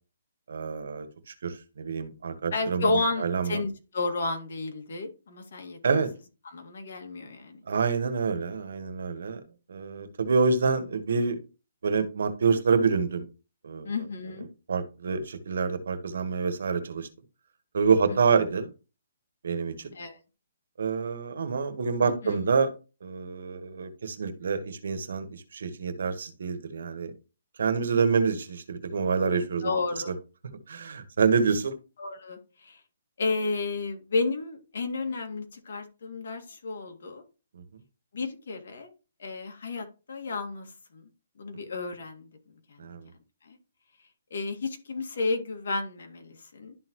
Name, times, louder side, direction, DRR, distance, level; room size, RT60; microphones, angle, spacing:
voice 1, 0.5-2.8 3.2-3.6 5.8-6.1 7.7-9.4 9.7-11.4 11.8-13.3 13.6-13.9 14.7-17.1 17.7-18.7 19.4-19.9 20.8-22.7 23.0-27.1 27.6-29.7 30.0-30.1 30.7-31.7 42.8-43.0, right 5 dB, 70° right, 10 dB, 1.4 m, -27 dB
voice 2, 2.5-5.8 6.4-7.6 13.8-14.5 18.1-18.2 19.9-20.2 22.0-22.5 29.6-30.1 32.0-32.8 33.2-37.2 38.1-38.9 39.2-41.0 41.4-42.3 42.7-42.8 43.4-43.6 44.3-46.8, left 3 dB, 65° left, 4 dB, 1.9 m, -32 dB
12.0 x 3.9 x 3.0 m, 0.31 s
hypercardioid pair, 160°, 0 cm